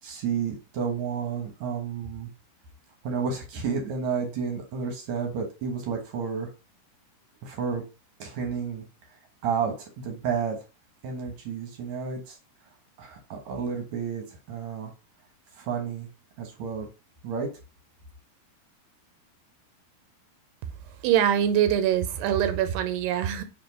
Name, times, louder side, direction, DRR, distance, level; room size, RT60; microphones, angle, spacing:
voice 1, 0.0-2.3 3.0-6.5 7.4-7.8 8.2-8.9 9.4-10.6 11.0-12.4 13.0-14.9 15.5-16.1 16.4-16.9 17.2-17.5, right 6 dB, 65° right, 1.9 m, -31 dB
voice 2, 21.0-23.4, right 10 dB, 80° right, 2.6 m, -23 dB
7.0 x 3.3 x 5.3 m
omnidirectional pair, 4.8 m